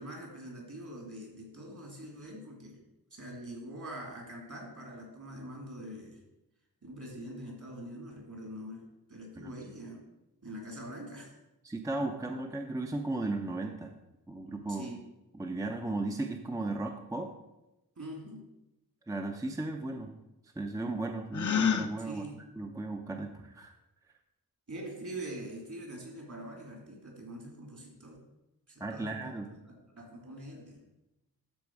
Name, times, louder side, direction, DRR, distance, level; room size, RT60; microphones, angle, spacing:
voice 1, 0.0-2.8 3.1-6.2 6.8-8.8 9.1-10.0 10.4-11.4 14.7-15.0 18.0-18.4 22.0-22.4 24.7-28.2 28.7-29.3 29.6-30.8, right 1 dB, 55° right, 0 dB, 2.9 m, -44 dB
voice 2, 11.6-13.9 14.3-14.9 15.3-17.3 19.1-20.1 20.6-22.2 22.6-23.7 28.8-29.5, right 2 dB, 10° right, 3 dB, 0.6 m, -35 dB
Gasp, 21.3-21.9, left 6 dB, 55° left, 0.7 m, -27 dB
12.5 x 4.6 x 4.7 m, 0.94 s
wide cardioid pair, 110°, 36 cm